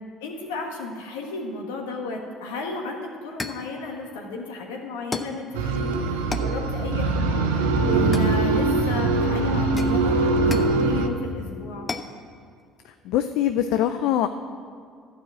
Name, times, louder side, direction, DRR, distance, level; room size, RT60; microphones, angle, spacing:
voice 1, 0.2-11.9, left 3 dB, 85° left, 1 dB, 1.3 m, -33 dB
sound 1, 2.7-2.8 3.4-3.7 5.1-5.4 6.3-6.6 8.1-8.8 9.8-10.8 11.9-12.2, left 3 dB, 25° left, 0.7 m, -33 dB
sound 2, 5.5-11.1, right 3 dB, 90° right, 0.7 m, -22 dB
voice 2, 12.8-14.3, left 11 dB, 70° left, 9 dB, 0.4 m, -23 dB
11.5 x 4.9 x 7.6 m, 2.2 s
hypercardioid pair, 70°, 0 cm